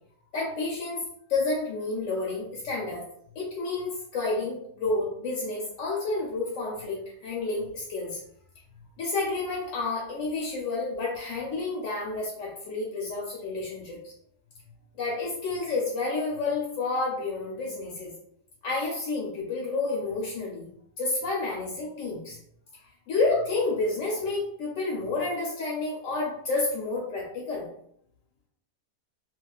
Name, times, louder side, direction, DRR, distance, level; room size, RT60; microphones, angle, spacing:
voice 1, 0.3-3.1 3.3-8.2 9.0-14.1 14.9-18.1 18.6-20.7 21.0-22.4 23.1-27.6, left 3 dB, 70° left, -3 dB, 0.9 m, -30 dB
2.3 x 2.3 x 2.2 m, 0.68 s
omnidirectional pair, 1.5 m